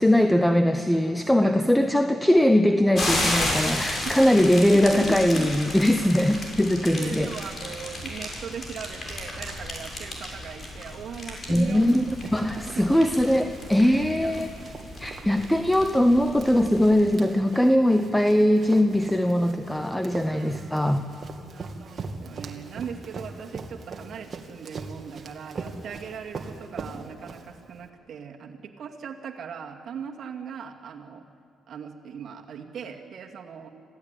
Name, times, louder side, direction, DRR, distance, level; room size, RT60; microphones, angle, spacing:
voice 1, 0.0-7.3 11.5-12.0 12.3-14.5 15.0-21.1, left 1 dB, 5° left, 8 dB, 0.9 m, -21 dB
sound 1, 2.9-17.2, left 1 dB, 40° left, 6.4 m, -33 dB
voice 2, 6.9-12.1 12.5-13.2 13.8-14.6 15.0-15.1 20.3-21.1 21.5-31.2 31.7-33.7, right 7 dB, 60° right, 2 dB, 2.3 m, -39 dB
Run, 11.7-27.8, right 4 dB, 40° right, 2.3 m, -41 dB
26.5 x 16.0 x 9.1 m, 2.3 s
cardioid pair, 90°, 0 cm